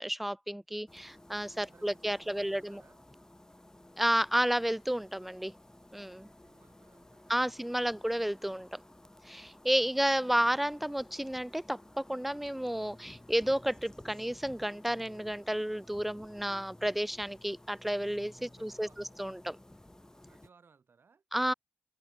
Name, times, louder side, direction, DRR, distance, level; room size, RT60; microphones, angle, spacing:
voice 1, 0.0-2.8 4.0-5.5 5.9-6.3 7.3-8.8 9.3-18.9 19.2-19.6 21.3-21.5, equal, 5° right, 0.3 m, -31 dB
sound 1, 0.9-20.5, left 1 dB, 15° left, 0.9 m, -55 dB
voice 2, 1.5-3.0 6.4-8.0 9.8-10.2 18.4-19.1 20.3-21.2, right 5 dB, 60° right, 5.1 m, -63 dB
supercardioid pair, 45°, 4 cm